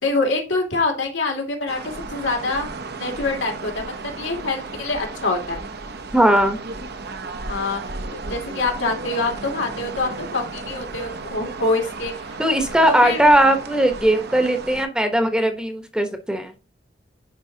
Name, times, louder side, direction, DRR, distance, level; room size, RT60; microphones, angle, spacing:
voice 1, 0.0-2.7 3.0-5.6 7.5-7.8 8.3-12.1 12.9-13.2, left 3 dB, 85° left, 2 dB, 2.5 m, -25 dB
sound 1, 1.7-14.9, right 3 dB, 60° right, 0.8 m, -34 dB
voice 2, 6.1-6.6 12.4-16.5, right 1 dB, 5° right, 6 dB, 1.0 m, -18 dB
10.0 x 4.6 x 2.8 m, 0.32 s
head